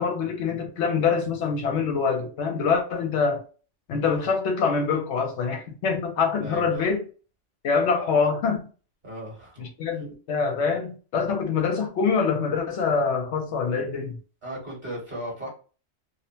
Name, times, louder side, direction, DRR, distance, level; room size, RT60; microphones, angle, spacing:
voice 1, 0.0-3.4 3.9-7.0 7.6-8.7 9.6-14.2, left 5 dB, 75° left, 0.9 m, -25 dB
voice 2, 6.4-6.9 9.0-9.7 14.4-15.5, right 1 dB, 40° right, 1.4 m, -36 dB
2.6 x 2.1 x 2.7 m
omnidirectional pair, 1.2 m